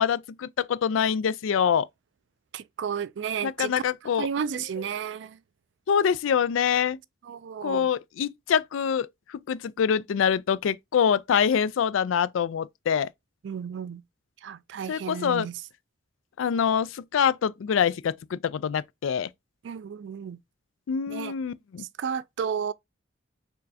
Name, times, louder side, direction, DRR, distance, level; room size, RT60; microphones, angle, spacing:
voice 1, 0.0-1.9 3.4-4.3 5.9-7.0 7.6-13.1 14.9-15.5 16.4-19.3 20.9-21.9, left 7 dB, 90° left, 0.4 m, -25 dB
voice 2, 2.5-3.7 4.0-5.4 7.2-7.9 13.4-14.0 14.4-15.6 19.6-20.4 21.1-21.3 21.8-22.7, right 7 dB, 70° right, 0.3 m, -33 dB
4.4 x 3.2 x 2.7 m
head